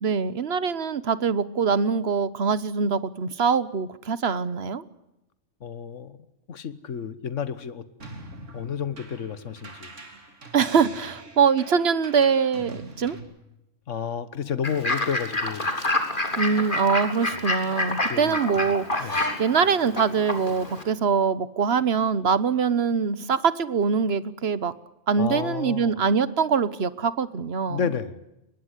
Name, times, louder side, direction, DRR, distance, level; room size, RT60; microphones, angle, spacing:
voice 1, 0.0-4.8 10.5-13.2 16.4-24.7 25.1-27.9, right 6 dB, 55° right, 16 dB, 1.3 m, -23 dB
voice 2, 5.6-6.2 6.5-7.9 8.5-9.9 13.9-15.7 17.2-17.4 18.0-18.6 19.0-19.2 25.2-26.0 27.7-28.2, left 7 dB, 80° left, 13 dB, 1.6 m, -31 dB
sound 1, 8.0-13.2, right 2 dB, 80° right, 3.5 m, -43 dB
Fowl / Bird, 14.6-20.8, left 2 dB, 40° left, 3.9 m, -28 dB
24.0 x 20.5 x 8.2 m, 0.90 s
omnidirectional pair, 1.3 m